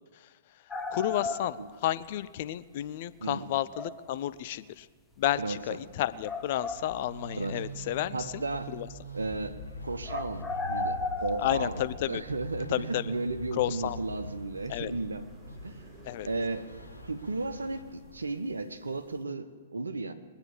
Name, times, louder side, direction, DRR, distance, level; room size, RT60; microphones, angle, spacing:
sound 1, 0.7-2.1 3.7-4.1 5.4-5.5 6.2-7.4 10.1-12.2 14.7-14.8, left 3 dB, 10° left, 0.9 m, -35 dB
voice 1, 0.9-4.9 5.2-8.4 8.7-8.9 11.4-12.2 12.7-13.1 13.6-14.0 14.7-14.9 16.0-16.3, left 13 dB, 45° left, 14 dB, 0.6 m, -31 dB
sound 2, 5.1-17.8, equal, 10° right, 4.4 m, -53 dB
sound 3, 6.7-18.5, equal, 85° left, 0.9 m, -43 dB
voice 2, 8.1-8.7 9.1-9.6 9.8-15.3 15.6-15.8 16.3-16.6 17.0-20.1, right 3 dB, 70° right, 9 dB, 1.2 m, -34 dB
21.5 x 7.9 x 7.2 m, 1.5 s
figure-of-eight pair, 110°, 0 cm